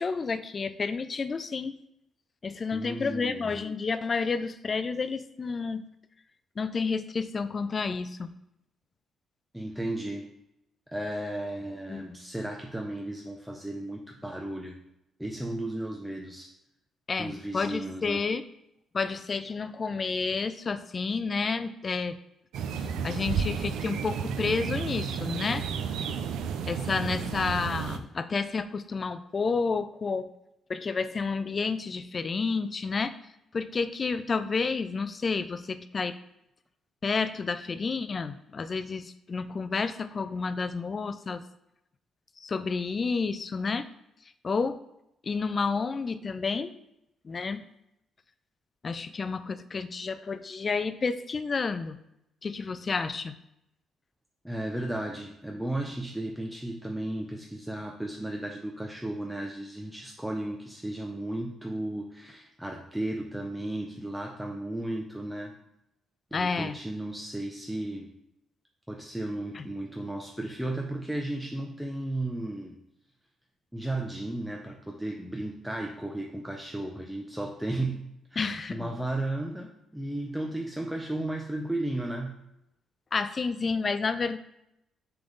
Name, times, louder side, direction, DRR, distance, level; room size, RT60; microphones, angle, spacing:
voice 1, 0.0-1.8 2.4-5.9 6.6-8.3 11.9-12.2 17.1-18.4 18.9-22.2 22.8-25.6 26.7-30.3 30.7-33.1 33.5-36.2 37.0-41.4 42.4-43.9 44.4-44.8 45.2-46.8 47.2-47.7 48.8-52.0 52.4-53.3 66.3-66.8 69.5-69.6 78.4-78.9 83.1-84.4, left 4 dB, 35° left, 13 dB, 0.4 m, -30 dB
voice 2, 2.7-3.5 9.5-10.3 10.9-14.8 15.2-16.5 17.2-18.2 54.4-65.6 66.3-68.1 68.9-72.8 73.7-78.0 78.3-82.4, right 1 dB, 5° right, 2 dB, 0.6 m, -34 dB
sound 1, 22.5-28.0, right 6 dB, 85° right, 0.5 m, -32 dB
6.9 x 3.5 x 3.9 m, 0.84 s
cardioid pair, 90°, 0 cm